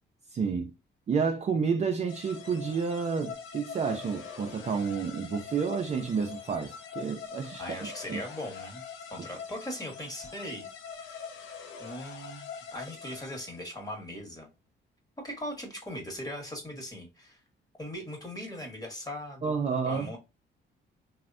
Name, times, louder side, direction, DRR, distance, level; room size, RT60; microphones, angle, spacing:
voice 1, 0.3-0.7 1.1-7.6 8.1-8.2 19.4-20.1, right 5 dB, 35° right, 0.4 m, -30 dB
sound 1, 2.1-13.8, left 6 dB, 80° left, 0.5 m, -44 dB
voice 2, 7.6-8.8 9.1-10.7 11.0-11.3 11.8-14.5 15.2-17.4 17.8-19.5 19.8-20.2, left 1 dB, 20° left, 1.0 m, -39 dB
3.2 x 2.1 x 2.3 m
cardioid pair, 90°, 20 cm